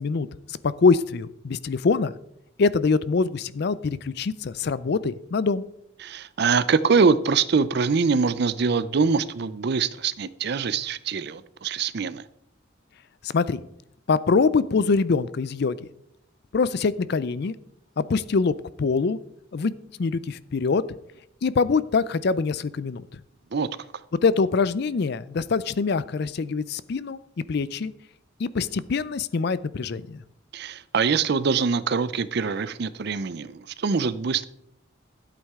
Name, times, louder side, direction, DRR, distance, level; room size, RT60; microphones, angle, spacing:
voice 1, 0.0-2.1 2.6-5.6 13.2-13.6 14.1-15.8 16.5-17.5 18.0-19.2 19.5-19.7 20.0-20.8 21.4-23.0 24.2-27.2 27.5-27.9 28.4-30.2, left 4 dB, 55° left, 17 dB, 0.4 m, -24 dB
voice 2, 6.0-12.2 23.5-23.7 30.5-34.4, right 5 dB, 55° right, 15 dB, 0.5 m, -24 dB
12.5 x 8.4 x 3.6 m, 0.75 s
head